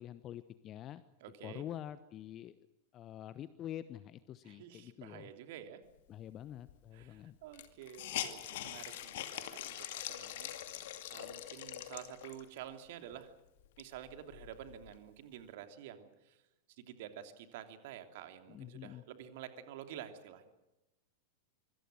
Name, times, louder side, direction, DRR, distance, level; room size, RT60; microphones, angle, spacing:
voice 1, 0.0-1.0 1.4-2.5 2.9-5.3 6.1-7.4 18.5-19.0, left 11 dB, 30° left, 15 dB, 1.0 m, -46 dB
voice 2, 1.2-1.7 4.4-5.8 6.9-10.5 11.1-13.3 13.8-16.4 16.8-20.5, right 10 dB, 50° right, 8 dB, 3.0 m, -50 dB
Hiss, 6.7-6.8 7.0-7.1 7.5-12.6 13.1-13.2 13.6-15.0, left 12 dB, 55° left, 2.5 m, -43 dB
25.5 x 25.0 x 6.4 m, 0.97 s
figure-of-eight pair, 90°, 0 cm